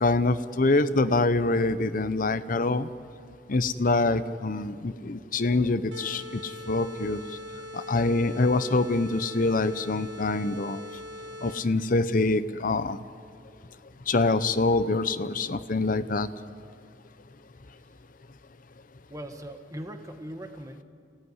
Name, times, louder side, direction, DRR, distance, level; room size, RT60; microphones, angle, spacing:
voice 1, 0.0-2.9 3.5-7.2 7.7-10.8 11.4-13.0 14.1-16.3, left 2 dB, 45° left, 13 dB, 0.8 m, -25 dB
sound 1, 5.9-11.9, left 1 dB, 70° right, 2.0 m, -41 dB
voice 2, 19.1-20.8, right 1 dB, 20° right, 6 dB, 1.4 m, -40 dB
30.0 x 17.0 x 9.7 m, 2.3 s
head